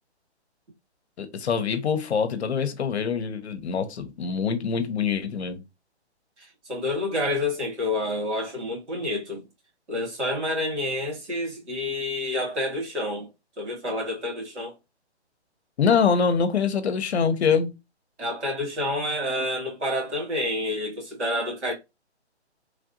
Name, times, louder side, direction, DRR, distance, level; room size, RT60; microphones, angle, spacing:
voice 1, 1.2-5.6 15.8-17.7, left 6 dB, 70° left, 0.7 m, -24 dB
voice 2, 6.4-9.4 9.9-13.3 13.6-14.7 18.2-21.7, left 1 dB, 80° right, 1.8 m, -28 dB
3.2 x 2.6 x 2.5 m
hypercardioid pair, 145°, 34 cm